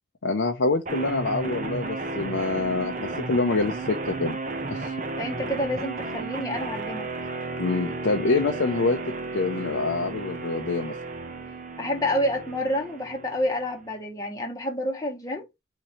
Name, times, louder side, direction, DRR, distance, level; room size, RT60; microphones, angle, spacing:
voice 1, 0.2-4.4 4.7-5.0 7.6-9.0 9.3-10.9, left 3 dB, 70° left, 0.6 m, -26 dB
sound 1, 0.9-13.8, right 3 dB, 40° right, 0.7 m, -33 dB
voice 2, 5.2-7.1 11.8-15.4, left 1 dB, 15° left, 0.9 m, -28 dB
3.7 x 3.0 x 4.3 m
head